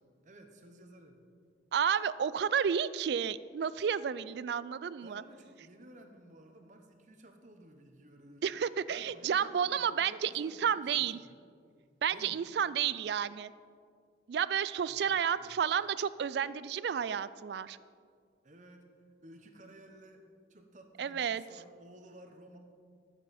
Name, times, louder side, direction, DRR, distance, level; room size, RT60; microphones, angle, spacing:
voice 1, 0.2-1.2 5.0-8.6 8.9-11.4 12.1-12.4 14.9-15.6 18.4-18.9 19.2-20.2 20.5-22.6, right 1 dB, 40° right, 5 dB, 1.0 m, -55 dB
voice 2, 1.7-5.2 8.4-11.2 12.0-13.5 14.3-17.8 21.0-21.4, right 8 dB, 65° right, 17 dB, 0.3 m, -31 dB
13.5 x 7.3 x 4.2 m, 2.1 s
head